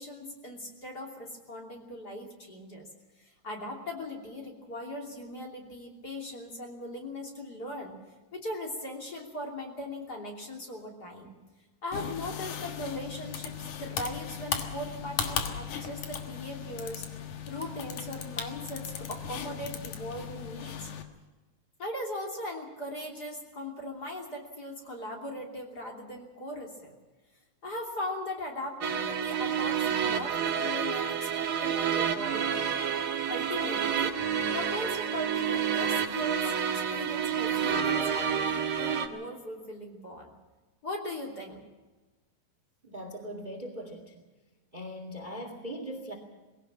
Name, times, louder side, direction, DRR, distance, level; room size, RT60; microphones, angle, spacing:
voice 1, 0.0-2.9 3.2-7.9 8.3-11.3 11.8-17.0 17.5-20.9 21.8-26.9 27.6-32.7 33.3-34.2 34.5-40.3 40.8-41.6, left 1 dB, 30° left, 0 dB, 3.4 m, -39 dB
sound 1, 11.9-21.0, left 7 dB, 85° left, 3.0 m, -37 dB
sound 2, 28.8-39.1, right 8 dB, 50° right, 2.1 m, -29 dB
voice 2, 42.8-44.1 44.7-46.1, equal, 15° right, 5 dB, 2.0 m, -40 dB
21.0 x 17.0 x 7.6 m, 1.2 s
omnidirectional pair, 3.4 m